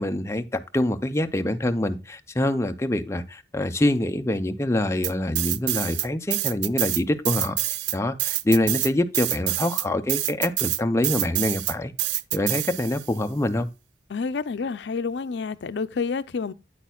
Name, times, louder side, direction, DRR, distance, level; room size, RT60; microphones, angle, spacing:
voice 1, 0.0-7.6 7.9-11.9 12.3-13.7, left 1 dB, 15° left, 0.5 m, -25 dB
sound 1, 5.0-6.1 6.3-13.1, right 16 dB, 70° right, 0.3 m, -26 dB
voice 2, 14.1-16.5, left 5 dB, 75° left, 0.5 m, -29 dB
9.1 x 8.5 x 2.3 m
head